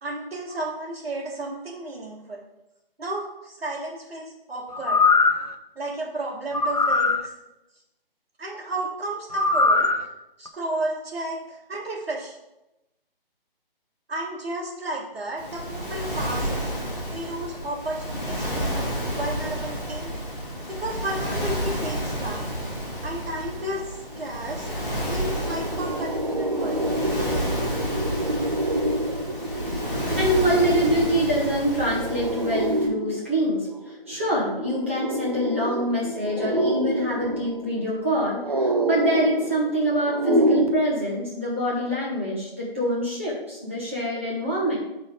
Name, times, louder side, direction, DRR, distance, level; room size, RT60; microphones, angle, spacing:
voice 1, 0.0-2.4 3.0-5.0 5.8-7.3 8.4-9.9 10.4-12.4 14.1-16.7 17.1-20.1 20.7-22.5 23.0-24.7 25.1-26.9, right 1 dB, 90° right, -6 dB, 1.8 m, -33 dB
sound 1, 4.7-5.5 6.5-7.2 9.3-10.0 10.5-10.6, left 3 dB, 40° left, 0.5 m, -20 dB
Waves surf, 15.4-32.9, equal, 15° left, 1.8 m, -30 dB
sound 2, 24.1-24.2 24.5-40.7, right 1 dB, 40° right, 0.7 m, -27 dB
voice 2, 30.0-44.8, equal, 15° right, -6 dB, 1.1 m, -25 dB
10.5 x 4.0 x 3.8 m, 0.94 s
hypercardioid pair, 175°, 29 cm